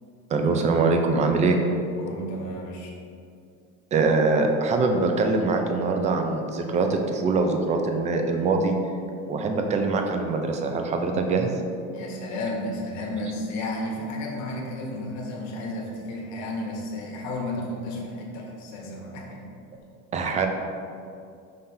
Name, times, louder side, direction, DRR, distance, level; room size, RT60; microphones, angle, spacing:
voice 1, 0.3-1.6 3.9-8.7 9.3-11.5 20.1-20.5, right 3 dB, 20° right, 4 dB, 0.4 m, -23 dB
voice 2, 2.0-2.9 11.9-19.4, left 1 dB, 45° left, -1 dB, 1.3 m, -33 dB
5.7 x 3.3 x 5.5 m, 2.4 s
supercardioid pair, 140°, 39 cm